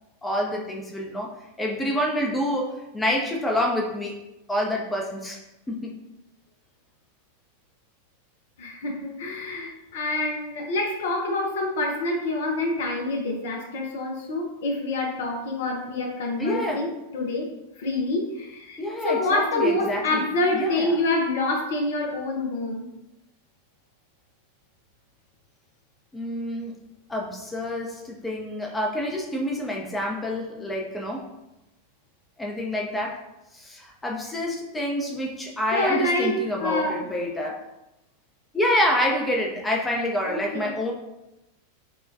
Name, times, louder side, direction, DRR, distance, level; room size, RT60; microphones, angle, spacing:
voice 1, 0.2-1.3 1.6-4.1 4.5-5.4 5.7-6.0 16.4-16.8 18.8-20.2 20.5-21.0 26.1-26.7 27.1-31.3 32.4-33.2 33.5-37.6 38.5-40.9, left 1 dB, 10° left, 0 dB, 0.6 m, -27 dB
voice 2, 8.6-17.5 17.8-18.8 19.0-22.9 35.7-37.0 40.3-40.7, left 2 dB, 60° left, 1 dB, 0.6 m, -27 dB
5.4 x 2.3 x 2.6 m, 0.93 s
figure-of-eight pair, 90°, 0 cm